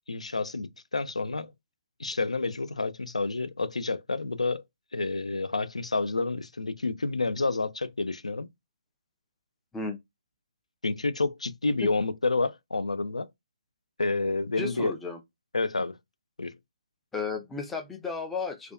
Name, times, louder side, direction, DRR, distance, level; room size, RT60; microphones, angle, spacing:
voice 1, 0.1-1.5 2.0-4.6 4.9-8.5 10.8-13.3 14.0-14.9 15.5-16.0 16.4-16.6, left 3 dB, 75° left, 0.3 m, -29 dB
voice 2, 14.6-15.2 17.1-18.7, left 4 dB, 5° left, 0.4 m, -33 dB
2.5 x 2.2 x 2.2 m
figure-of-eight pair, 135°, 4 cm